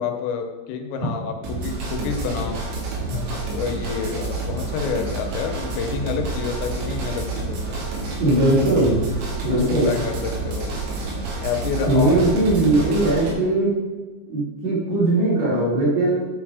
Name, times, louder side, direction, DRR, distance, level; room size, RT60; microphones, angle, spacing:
voice 1, 0.0-2.6 3.3-7.9 9.5-10.7 11.4-12.2, left 6 dB, 80° left, 5 dB, 3.0 m, -29 dB
sound 1, 1.4-13.3, right 3 dB, 85° right, 4.2 m, -29 dB
voice 2, 8.2-9.0 9.4-9.9 11.9-13.7 14.3-16.3, right 1 dB, 65° right, -7 dB, 4.8 m, -19 dB
11.0 x 4.1 x 4.9 m, 1.3 s
omnidirectional pair, 5.1 m